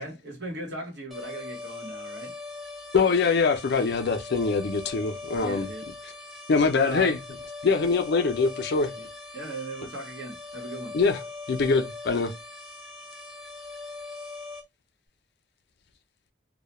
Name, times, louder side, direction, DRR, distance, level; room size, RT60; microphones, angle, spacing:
voice 1, 0.0-2.3 5.3-5.9 6.8-7.2 9.0-9.1 9.3-11.0, right 2 dB, 60° right, 1.0 m, -37 dB
sound 1, 1.1-14.6, left 3 dB, ahead, 0.5 m, -41 dB
voice 2, 2.9-5.7 6.5-7.2 7.6-8.9 10.9-11.2 11.5-12.3, left 4 dB, 60° left, 0.4 m, -23 dB
2.2 x 2.1 x 2.8 m
head